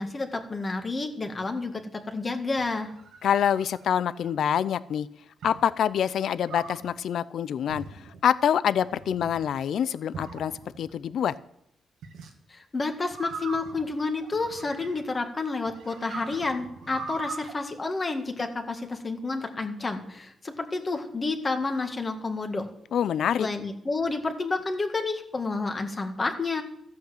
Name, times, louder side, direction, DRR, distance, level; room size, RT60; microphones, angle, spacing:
voice 1, 0.0-2.9 12.5-22.7 23.4-26.6, left 3 dB, 25° left, 5 dB, 1.8 m, -30 dB
sound 1, 2.6-4.4 5.4-5.8 6.5-6.9 7.7-8.2 8.8-9.4 10.1-10.9 12.0-12.3 13.1-15.2 15.7-17.5, right 4 dB, 90° right, 1.9 m, -41 dB
voice 2, 3.2-5.1 5.4-11.3 22.9-23.5, left 9 dB, 70° left, 17 dB, 0.5 m, -26 dB
14.5 x 8.5 x 7.8 m, 0.75 s
cardioid pair, 135°, 0 cm